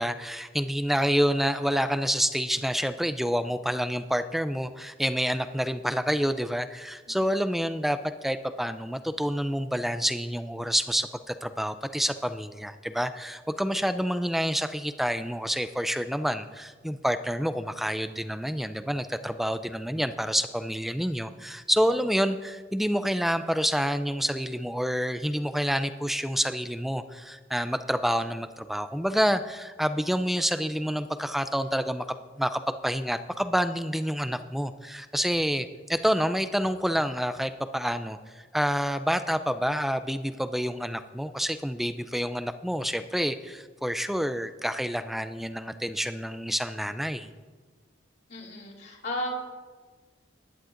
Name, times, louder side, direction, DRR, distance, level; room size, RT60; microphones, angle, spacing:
voice 1, 0.0-32.1 32.4-38.2 38.5-47.3, equal, ahead, 10 dB, 0.3 m, -28 dB
voice 2, 48.3-49.3, left 1 dB, 60° left, -6 dB, 2.9 m, -34 dB
20.0 x 10.5 x 2.5 m, 1.5 s
head